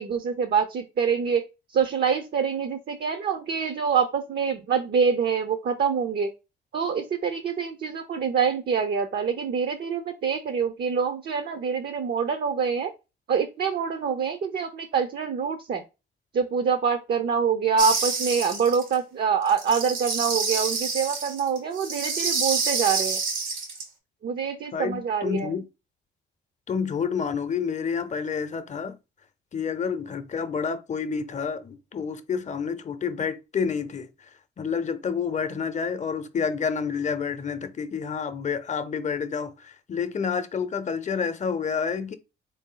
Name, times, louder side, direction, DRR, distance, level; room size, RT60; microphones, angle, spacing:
voice 1, 0.0-1.4 1.7-6.3 6.7-12.9 13.3-15.8 16.3-23.2 24.2-25.5, right 6 dB, 50° right, 0.6 m, -25 dB
sound 1, 17.8-18.9 19.5-23.8, right 4 dB, 85° right, 1.3 m, -28 dB
voice 2, 24.7-25.7 26.7-29.0 29.5-34.3 34.6-42.2, left 6 dB, 35° left, 0.7 m, -29 dB
3.9 x 2.7 x 3.8 m
cardioid pair, 90°, 20 cm